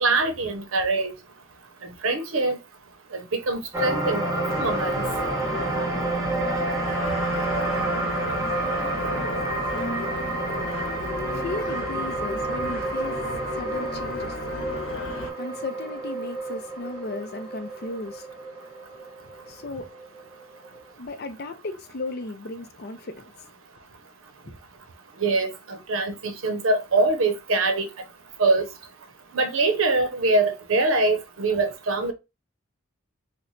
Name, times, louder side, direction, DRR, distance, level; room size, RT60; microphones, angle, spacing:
voice 1, 0.0-1.1 2.0-2.6 3.1-5.0 25.2-27.9 28.4-28.7 29.3-32.1, right 3 dB, 75° right, 0.6 m, -23 dB
sound 1, 3.7-20.2 20.6-20.8, right 2 dB, 15° right, 0.8 m, -29 dB
sound 2, 4.5-15.3, left 2 dB, 70° left, 1.0 m, -34 dB
voice 2, 11.3-13.2 13.5-14.4 15.4-18.2 19.5-19.9 21.0-23.3, left 2 dB, 50° left, 0.5 m, -35 dB
3.0 x 2.1 x 3.9 m
head